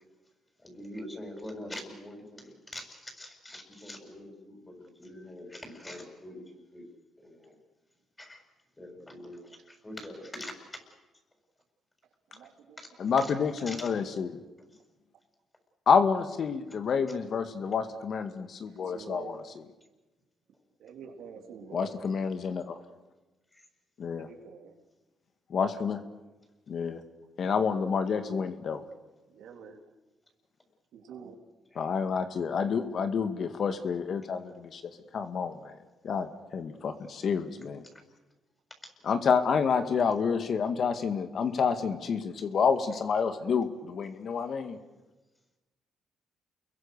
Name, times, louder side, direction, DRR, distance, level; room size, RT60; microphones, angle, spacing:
voice 1, 0.6-6.9 7.2-7.5 8.2-8.4 8.8-10.8 12.8-12.9 13.2-13.3 13.7-13.8 31.7-31.9 39.1-39.7, left 1 dB, 15° left, 4 dB, 7.2 m, -44 dB
voice 2, 12.3-12.8 18.7-19.4 20.8-21.9 24.2-24.8 29.3-29.8 30.9-31.4 43.3-43.6, right 6 dB, 75° right, 3 dB, 3.6 m, -47 dB
voice 3, 13.0-14.4 15.9-19.4 21.7-22.8 24.0-24.3 25.5-26.0 26.7-27.0 27.4-28.8 31.8-35.8 36.0-37.8 39.0-44.8, left 6 dB, 55° left, 8 dB, 1.9 m, -29 dB
30.0 x 22.5 x 6.8 m, 1.1 s
cardioid pair, 90°, 0 cm